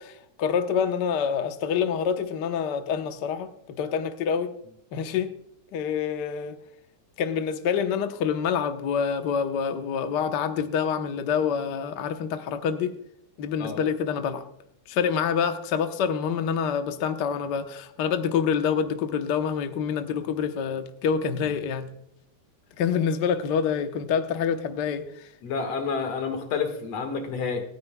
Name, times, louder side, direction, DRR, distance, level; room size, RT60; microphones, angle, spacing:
voice 1, 0.0-4.5 4.9-5.3 5.7-6.6 7.2-12.9 13.4-14.5 14.9-21.9 22.8-25.3, left 7 dB, 80° left, 0.9 m, -27 dB
voice 2, 25.4-27.7, left 5 dB, 60° left, 2.7 m, -29 dB
26.5 x 9.6 x 2.3 m
omnidirectional pair, 3.4 m